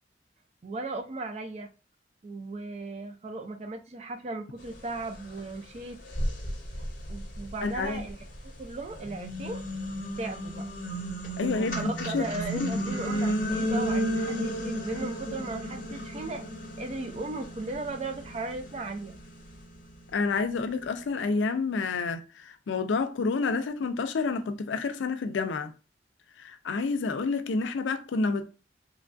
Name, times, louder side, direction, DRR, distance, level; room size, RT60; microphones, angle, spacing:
voice 1, 0.6-1.7 2.2-6.0 7.1-9.6 10.2-10.7 11.3-16.4 16.8-19.2, right 2 dB, 35° right, 0.4 m, -37 dB
sound 1, 5.4-5.5 6.1-8.4 8.9-20.2, equal, 45° left, 0.8 m, -33 dB
voice 2, 7.6-8.0 11.4-12.3 12.5-12.9 20.1-22.2 22.7-25.7 26.4-28.5, left 4 dB, 90° left, 0.4 m, -29 dB
3.1 x 2.2 x 2.5 m
head